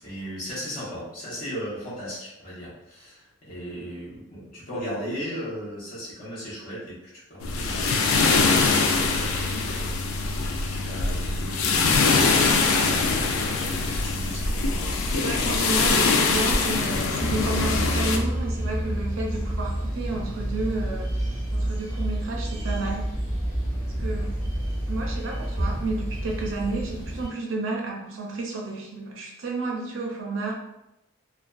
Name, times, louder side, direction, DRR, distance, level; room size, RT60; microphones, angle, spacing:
voice 1, 0.0-10.0 10.2-13.2 13.5-15.1 24.0-24.2, equal, 45° left, -9 dB, 0.9 m, -37 dB
sound 1, 7.4-18.2, left 4 dB, 80° left, 0.3 m, -23 dB
voice 2, 15.1-21.2 21.5-23.2 24.0-24.3 24.9-30.5, right 2 dB, 70° right, -1 dB, 0.5 m, -31 dB
sound 2, 17.2-27.3, right 1 dB, 10° left, 1.1 m, -29 dB
2.4 x 2.2 x 2.3 m, 0.89 s
head